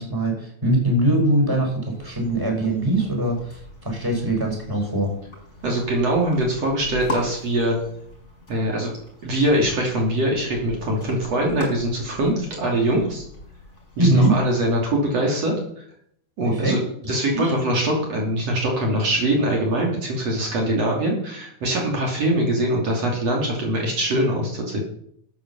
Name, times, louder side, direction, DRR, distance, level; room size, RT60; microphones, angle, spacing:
voice 1, 0.0-5.1 14.0-14.4 16.4-16.8 17.3-17.5, right 1 dB, 5° right, 1 dB, 4.1 m, -22 dB
sound 1, 1.9-14.8, left 1 dB, 20° left, 5.4 m, -39 dB
voice 2, 5.6-7.8 8.5-8.9 9.2-13.2 14.0-15.8 16.4-16.8 17.1-24.8, right 1 dB, 60° right, -1 dB, 3.8 m, -23 dB
12.5 x 8.8 x 7.0 m, 0.69 s
omnidirectional pair, 3.4 m